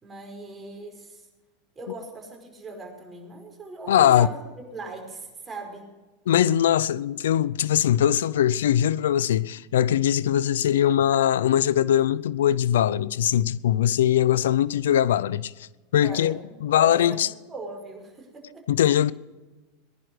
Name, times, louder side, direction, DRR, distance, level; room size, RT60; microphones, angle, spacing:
voice 1, 0.0-1.3 1.8-5.9 16.0-18.7, right 2 dB, 20° right, 5.5 m, -39 dB
voice 2, 3.9-4.3 6.3-15.7 15.9-17.3 18.7-19.1, left 10 dB, 80° left, 0.5 m, -21 dB
19.5 x 11.0 x 6.3 m
hypercardioid pair, 105°, 0 cm